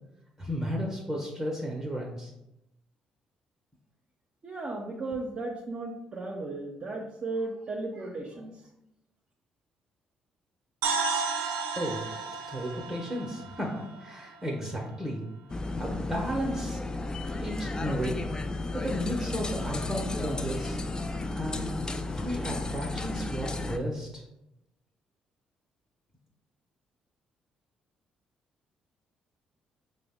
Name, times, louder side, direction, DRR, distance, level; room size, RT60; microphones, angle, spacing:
voice 1, 0.4-2.3 11.8-12.1 12.5-15.2 15.8-16.9 17.4-18.3 18.7-20.8 21.4-24.2, equal, 15° right, -1 dB, 0.8 m, -34 dB
voice 2, 4.4-8.5, right 2 dB, 45° right, -2 dB, 0.6 m, -35 dB
sound 1, 10.8-14.8, right 4 dB, 85° right, 0.4 m, -33 dB
sound 2, 15.5-23.8, left 2 dB, 25° left, 0.4 m, -33 dB
4.9 x 2.1 x 3.5 m, 0.88 s
supercardioid pair, 55°, 3 cm